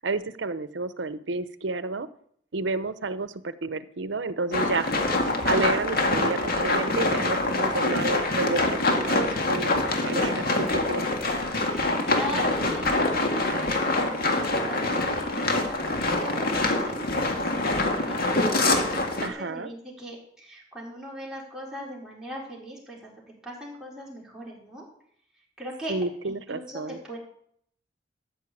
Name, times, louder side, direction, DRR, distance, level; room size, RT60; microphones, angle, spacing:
voice 1, 0.0-2.1 2.5-5.0 5.4-11.0 19.2-19.7 25.9-27.0, right 3 dB, 75° right, 14 dB, 0.8 m, -30 dB
sound 1, 4.5-19.3, left 2 dB, 55° left, 1.9 m, -25 dB
voice 2, 11.7-18.2 18.6-23.1 23.4-24.8 25.6-25.9 26.2-27.2, equal, 5° right, -5 dB, 4.4 m, -40 dB
13.5 x 5.6 x 8.4 m, 0.65 s
head